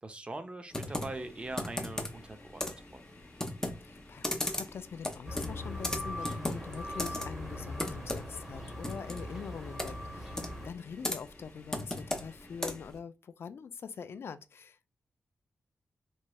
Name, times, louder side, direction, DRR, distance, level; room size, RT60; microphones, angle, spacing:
voice 1, 0.0-3.1, right 2 dB, 25° right, 0.5 m, -42 dB
Computer keyboard, 0.7-13.0, left 1 dB, 10° left, 0.6 m, -38 dB
sound 1, 0.8-12.9, left 3 dB, 45° left, 0.7 m, -58 dB
voice 2, 3.8-14.9, left 6 dB, 65° left, 0.4 m, -44 dB
sound 2, 5.3-10.7, left 1 dB, 10° right, 1.0 m, -41 dB
3.1 x 2.8 x 2.2 m
cardioid pair, 90°, 4 cm